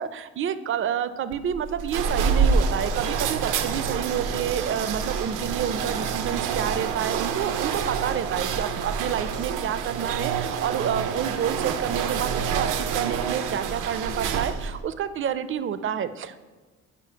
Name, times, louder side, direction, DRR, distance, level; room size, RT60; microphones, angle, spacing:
voice 1, 0.0-16.4, right 8 dB, 45° right, 13 dB, 0.4 m, -29 dB
sound 1, 1.3-14.8, right 6 dB, 90° right, 0.6 m, -27 dB
5.1 x 4.8 x 5.6 m, 1.3 s
cardioid pair, 90°, 30 cm